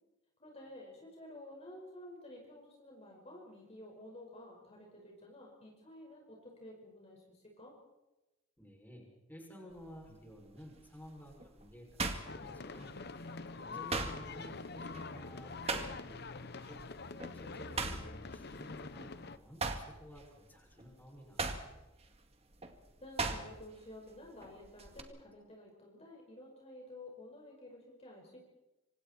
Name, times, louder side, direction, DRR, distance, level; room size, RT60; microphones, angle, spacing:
voice 1, 0.4-7.2 7.6-7.8 13.7-13.9 23.0-28.4, left 1 dB, 30° left, -1 dB, 5.4 m, -52 dB
voice 2, 8.6-12.9 13.6-16.8 17.3-21.5, equal, 10° left, 0 dB, 6.6 m, -53 dB
sound 1, 9.7-10.1 10.6-13.1 13.4-16.3 16.6-16.9 17.2-19.1 19.5-23.8 24.1-25.0, right 3 dB, 30° right, 2.1 m, -39 dB
sound 2, 12.2-19.4, left 4 dB, 55° left, 1.0 m, -45 dB
27.0 x 26.0 x 4.5 m, 1.0 s
head